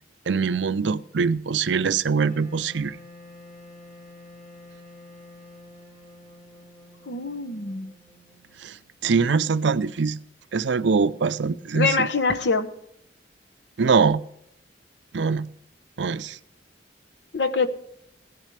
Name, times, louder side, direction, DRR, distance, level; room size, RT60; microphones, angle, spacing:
voice 1, 0.3-3.0 8.6-8.8 9.0-10.2 10.5-12.1 13.8-14.2 15.1-15.5 16.0-16.4, right 5 dB, 75° right, 0.5 m, -23 dB
Wind instrument woodwind instrument, 2.2-9.1, left 1 dB, 45° left, 6.1 m, -48 dB
voice 2, 7.1-7.9 11.7-12.7 17.3-17.7, left 4 dB, 70° left, 1.0 m, -24 dB
16.5 x 10.5 x 3.3 m
head